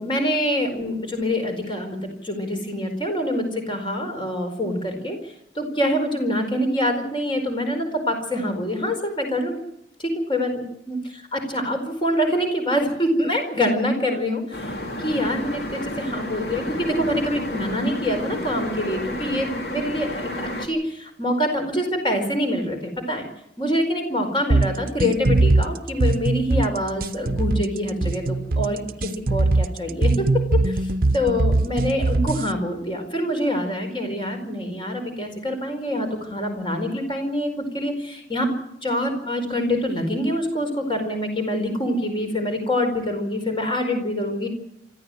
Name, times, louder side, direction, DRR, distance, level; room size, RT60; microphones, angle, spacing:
voice 1, 0.0-9.6 10.0-23.3 23.6-38.5 38.8-44.5, left 1 dB, 30° left, 5 dB, 4.6 m, -25 dB
sound 1, 14.5-20.7, left 1 dB, 60° left, 3.5 m, -31 dB
sound 2, 24.5-32.5, right 2 dB, 55° right, 0.8 m, -21 dB
25.0 x 14.5 x 7.7 m, 0.78 s
head